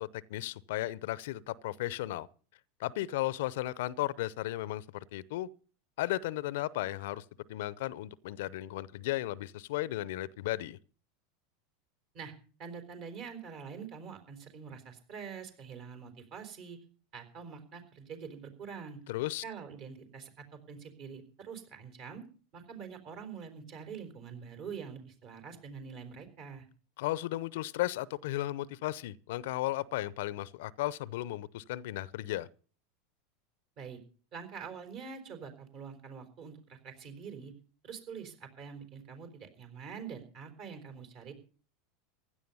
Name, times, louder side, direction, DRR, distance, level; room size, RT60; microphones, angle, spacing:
voice 1, 0.0-2.3 2.8-5.5 6.0-10.8 19.1-19.4 27.0-32.5, left 16 dB, 65° left, 0.6 m, -35 dB
voice 2, 12.6-16.8 17.1-19.0 19.4-22.2 22.5-26.7 33.8-34.0 34.3-37.5 37.8-41.3, right 6 dB, 50° right, 4.2 m, -45 dB
16.0 x 11.0 x 5.5 m
hypercardioid pair, 85°, 0 cm